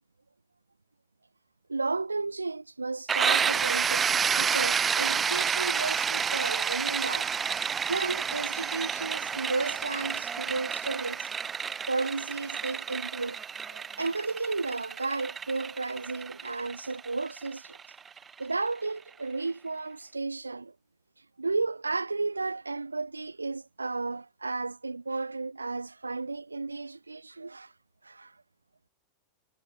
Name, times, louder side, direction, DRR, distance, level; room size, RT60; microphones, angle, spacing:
voice 1, 1.7-7.3 7.9-11.3 11.9-13.4 13.7-17.8 18.4-20.7 21.4-27.7 28.0-28.3, right 3 dB, 80° right, 1.6 m, -33 dB
sound 1, 3.1-18.7, right 7 dB, 20° right, 0.6 m, -30 dB
figure-of-eight pair, 90°, 0 cm